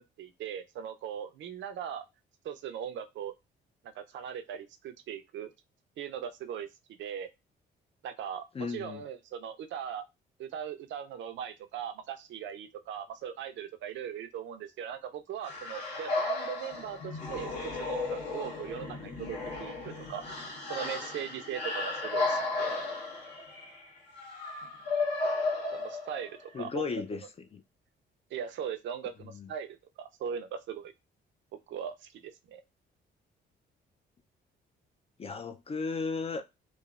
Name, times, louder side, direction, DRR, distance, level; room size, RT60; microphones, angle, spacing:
voice 1, 0.0-2.1 2.4-3.3 3.8-5.5 6.0-7.3 8.0-10.1 10.4-20.2 20.7-22.7 25.7-27.3 28.3-30.9 31.7-32.6, right 8 dB, 70° right, 0.5 m, -39 dB
voice 2, 8.5-9.0 26.5-27.2 27.5-27.6 29.3-29.5 35.2-36.4, left 4 dB, 30° left, 0.4 m, -35 dB
sound 1, 15.4-26.5, left 3 dB, 60° left, 1.3 m, -34 dB
3.1 x 2.1 x 2.3 m
cardioid pair, 90°, 20 cm